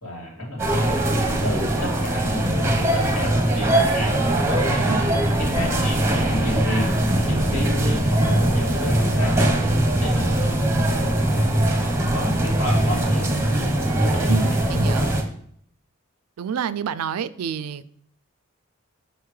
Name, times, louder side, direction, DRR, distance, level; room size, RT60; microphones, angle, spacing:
voice 1, 0.0-1.0 1.4-5.0 5.4-9.5 10.0-10.6 11.2-11.8 12.1-14.5, left 1 dB, 75° left, -3 dB, 2.4 m, -31 dB
sound 1, 0.6-15.2, right 1 dB, 10° right, 0.7 m, -21 dB
voice 2, 14.3-15.1 16.4-17.9, right 7 dB, 90° right, 16 dB, 0.3 m, -28 dB
5.7 x 5.6 x 3.2 m, 0.64 s
head